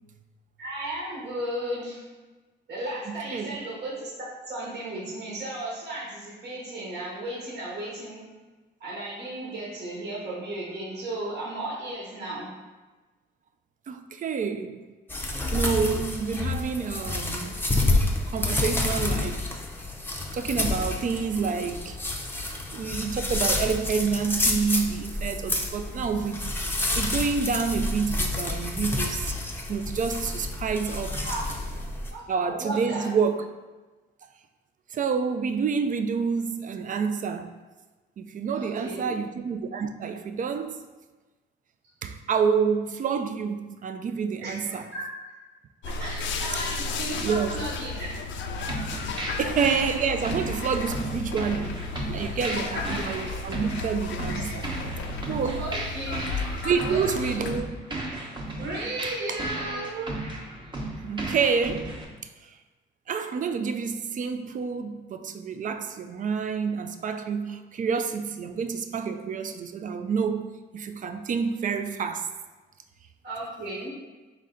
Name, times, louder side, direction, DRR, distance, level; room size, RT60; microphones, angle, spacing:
voice 1, 0.6-2.0 2.7-8.2 8.8-12.6 31.1-31.4 32.1-33.1 38.5-39.2 44.4-45.0 46.0-48.1 49.0-49.4 52.7-52.8 54.3-54.6 55.5-56.2 56.6-57.4 58.6-60.1 73.2-73.9, right 1 dB, 60° right, 1.2 m, -35 dB
voice 2, 3.1-3.6 13.9-14.8 15.5-17.6 18.3-19.4 20.3-22.0 22.7-26.4 26.7-31.2 32.3-33.4 34.9-37.5 38.2-40.8 42.0-44.9 47.2-47.6 49.4-51.8 52.1-54.6 55.3-55.7 56.6-57.7 59.3-59.4 59.7-59.9 61.0-61.9 62.4-62.5 63.1-70.5 70.7-72.3, right 6 dB, 40° right, 0.4 m, -28 dB
sound 1, 15.1-32.1, left 2 dB, 10° left, 0.6 m, -29 dB
sound 2, 45.8-57.6, left 3 dB, 70° left, 0.5 m, -34 dB
sound 3, 48.7-62.0, right 2 dB, 25° right, 0.9 m, -35 dB
4.0 x 3.2 x 3.8 m
cardioid pair, 90°, 20 cm